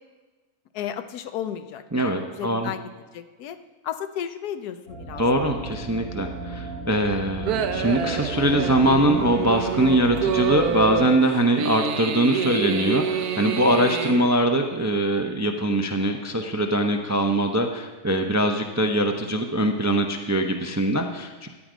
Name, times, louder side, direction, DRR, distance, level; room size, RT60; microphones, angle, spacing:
voice 1, 0.7-2.8 3.1-3.6 3.8-5.2 5.5-5.9, left 9 dB, 90° left, 10 dB, 1.3 m, -34 dB
voice 2, 1.9-2.7 5.2-21.5, right 1 dB, 25° right, 4 dB, 0.3 m, -22 dB
sound 1, 4.9-11.0, right 1 dB, 70° left, 3.1 m, -35 dB
sound 2, 7.5-14.3, right 7 dB, 80° right, 1.3 m, -27 dB
13.5 x 9.4 x 5.0 m, 1.3 s
omnidirectional pair, 1.6 m